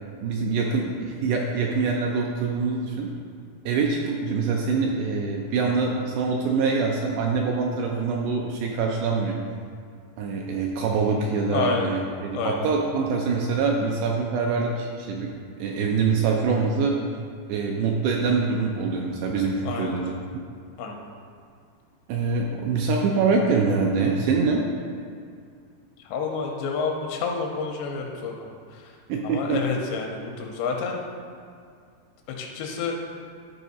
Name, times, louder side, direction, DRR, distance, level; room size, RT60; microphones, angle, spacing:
voice 1, 0.2-3.1 3.7-9.3 10.2-17.0 17.5-20.1 22.1-24.6 29.1-29.8, right 4 dB, 80° right, 0 dB, 2.5 m, -24 dB
voice 2, 11.5-11.9 12.3-12.7 19.6-19.9 20.8-21.0 26.0-28.9 29.2-31.0 32.4-33.0, left 5 dB, 85° left, 1 dB, 2.7 m, -29 dB
11.0 x 4.8 x 4.0 m, 2.3 s
omnidirectional pair, 5.3 m